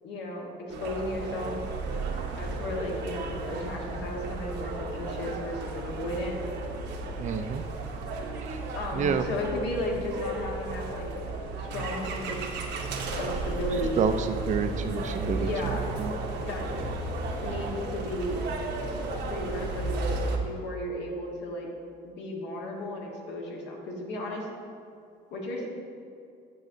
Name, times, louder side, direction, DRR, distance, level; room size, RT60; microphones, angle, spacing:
voice 1, 0.0-1.5 2.4-6.4 8.7-11.1 11.6-12.6 13.2-14.0 15.3-15.9 16.4-16.7 17.4-18.4 19.1-21.7 22.0-24.5 25.3-25.7, left 1 dB, 75° left, -1 dB, 1.3 m, -34 dB
sound 1, 0.7-20.4, right 2 dB, 70° right, 0.9 m, -34 dB
voice 2, 7.2-7.6 8.5-8.6 8.9-9.3 14.0-16.2, right 6 dB, 40° right, 8 dB, 0.4 m, -29 dB
9.2 x 6.1 x 2.7 m, 2.5 s
cardioid pair, 120°, 19 cm